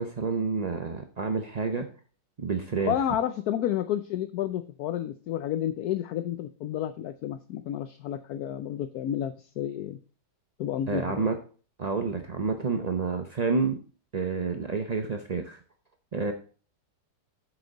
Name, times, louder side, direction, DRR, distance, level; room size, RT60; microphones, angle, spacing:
voice 1, 0.0-1.9 2.4-2.9 10.9-11.4 11.8-13.8 14.1-15.6 16.1-16.3, right 4 dB, 50° right, 5 dB, 0.5 m, -29 dB
voice 2, 2.8-10.0 10.6-11.3, left 11 dB, 70° left, 10 dB, 1.0 m, -31 dB
8.2 x 8.0 x 3.9 m, 0.39 s
omnidirectional pair, 1.9 m